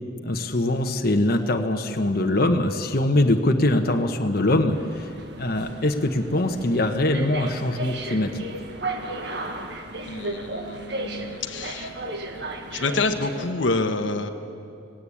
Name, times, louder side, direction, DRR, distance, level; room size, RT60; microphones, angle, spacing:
voice 1, 0.2-5.1 5.4-8.4, left 1 dB, 50° left, 4 dB, 1.1 m, -23 dB
sound 1, 4.7-13.5, right 2 dB, 60° right, 1.6 m, -35 dB
voice 2, 10.1-11.9 12.7-14.3, left 3 dB, 80° left, 6 dB, 1.2 m, -27 dB
19.5 x 17.0 x 8.5 m, 2.6 s
head